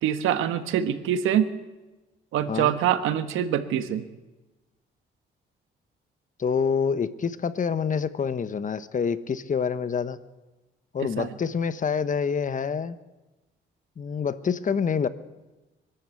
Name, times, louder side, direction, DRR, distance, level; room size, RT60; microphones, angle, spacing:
voice 1, 0.0-1.5 2.3-4.0 11.2-11.3, right 10 dB, 90° right, 10 dB, 1.4 m, -24 dB
voice 2, 6.4-10.2 10.9-13.0 14.0-15.1, left 6 dB, 40° left, 13 dB, 1.1 m, -27 dB
24.5 x 12.5 x 8.4 m, 1.1 s
cardioid pair, 90°, 20 cm